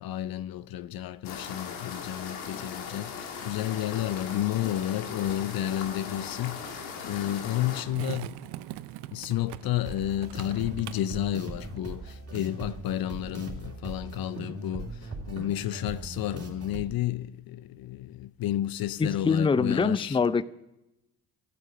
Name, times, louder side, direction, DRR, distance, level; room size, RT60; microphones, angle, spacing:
voice 1, 0.0-8.4 9.1-20.2, left 13 dB, 60° left, 0.6 m, -31 dB
sound 1, 1.2-7.8, left 6 dB, 90° left, 1.7 m, -39 dB
Skateboard, 4.1-12.1, right 15 dB, 75° right, 0.7 m, -45 dB
sound 2, 9.9-16.9, right 3 dB, 35° right, 3.0 m, -40 dB
voice 2, 19.0-20.4, left 5 dB, 15° left, 0.5 m, -24 dB
13.0 x 8.5 x 10.0 m
hypercardioid pair, 55°, 41 cm